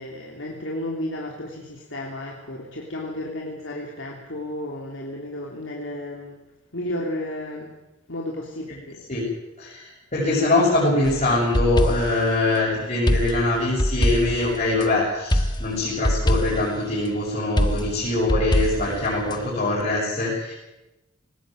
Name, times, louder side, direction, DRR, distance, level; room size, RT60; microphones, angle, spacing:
voice 1, 0.0-6.4 6.7-7.7 8.1-9.0, left 1 dB, 75° left, -1 dB, 3.3 m, -33 dB
voice 2, 9.6-20.5, left 2 dB, 40° left, -7 dB, 7.2 m, -23 dB
sound 1, 11.0-12.3 13.1-14.9 15.3-16.8 17.6-19.4, equal, 25° left, 1.5 m, -23 dB
19.5 x 19.0 x 9.2 m, 0.98 s
head